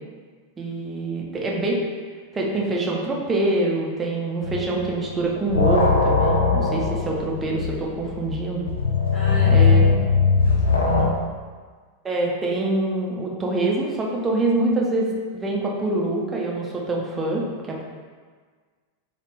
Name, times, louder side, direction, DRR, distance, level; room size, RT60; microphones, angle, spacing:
voice 1, 0.6-1.8 2.3-8.7 9.5-9.9 12.0-17.8, right 2 dB, 15° right, -2 dB, 0.6 m, -25 dB
sound 1, 4.4-4.9 5.2-11.1, left 4 dB, 75° left, 0.4 m, -20 dB
voice 2, 9.1-10.0 10.4-11.3, equal, 15° left, -8 dB, 1.1 m, -35 dB
3.2 x 2.4 x 3.1 m, 1.6 s
figure-of-eight pair, 90°, 0 cm